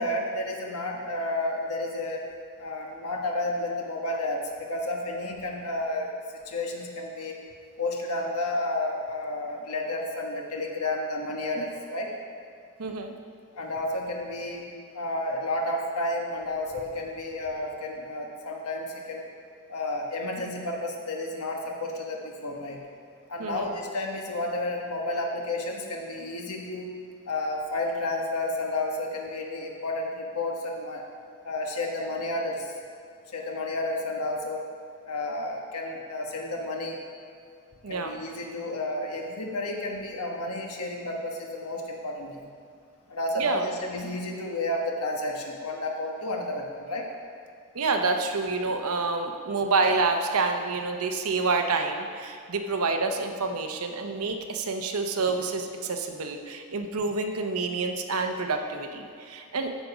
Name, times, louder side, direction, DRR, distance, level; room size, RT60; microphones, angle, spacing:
voice 1, 0.0-2.3 2.6-4.4 4.7-6.1 6.4-7.4 7.8-12.1 13.5-14.7 14.9-19.2 19.7-22.8 23.3-27.0 27.2-31.0 31.4-32.7 33.3-34.7 35.1-37.0 37.9-42.5 43.1-47.1, left 2 dB, 85° left, 0 dB, 1.4 m, -31 dB
voice 2, 12.8-13.1 23.4-23.7 37.8-38.1 43.4-43.7 47.7-59.7, right 3 dB, 75° right, 5 dB, 0.9 m, -28 dB
14.0 x 5.2 x 5.0 m, 2.3 s
head